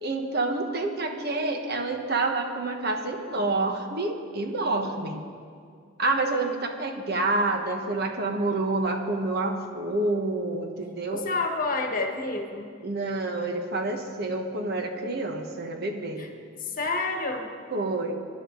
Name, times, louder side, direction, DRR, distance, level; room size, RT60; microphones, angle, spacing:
voice 1, 0.0-5.2 6.0-11.2 12.8-16.3 17.7-18.1, right 2 dB, 55° right, 4 dB, 1.3 m, -28 dB
voice 2, 11.1-12.7 16.2-16.3 16.6-17.5, left 3 dB, 45° left, 3 dB, 1.4 m, -29 dB
25.5 x 11.0 x 4.0 m, 2.2 s
head